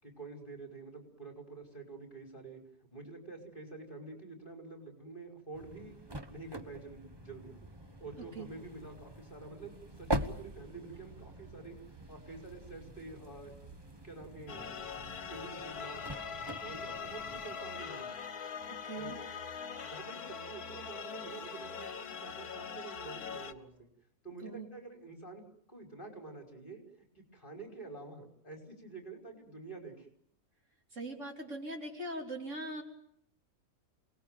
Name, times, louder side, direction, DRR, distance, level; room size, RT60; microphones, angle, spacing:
voice 1, 0.0-2.6 2.9-6.0 6.3-7.6 8.0-11.8 12.1-13.6 14.0-14.9 15.2-16.1 16.6-18.1 18.9-19.2 19.8-23.9 24.2-30.1, right 3 dB, 35° left, 2 dB, 5.8 m, -48 dB
sound 1, 5.5-17.6, right 1 dB, 15° right, 1.2 m, -43 dB
sound 2, 9.6-23.6, right 4 dB, 75° right, 5.7 m, -60 dB
sound 3, 14.5-23.5, left 6 dB, 80° left, 1.8 m, -42 dB
voice 2, 18.8-19.2 24.4-24.7 30.9-32.8, right 1 dB, 55° right, 2 dB, 3.9 m, -41 dB
28.5 x 20.0 x 9.4 m, 0.70 s
omnidirectional pair, 1.6 m